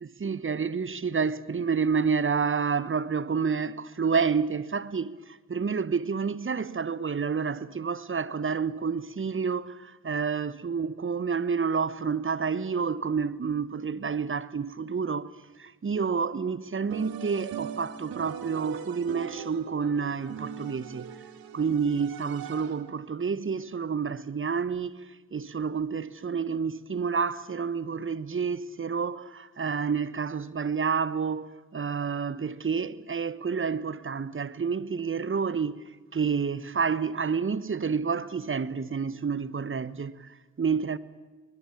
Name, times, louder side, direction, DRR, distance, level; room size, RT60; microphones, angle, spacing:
voice 1, 0.0-15.3 15.6-21.1 21.5-25.0 25.3-35.8 36.1-41.0, right 5 dB, 35° right, 1.3 m, -29 dB
sound 1, 16.9-23.0, right 9 dB, 70° right, 1.9 m, -40 dB
24.0 x 20.5 x 8.6 m
hypercardioid pair, 45°, 37 cm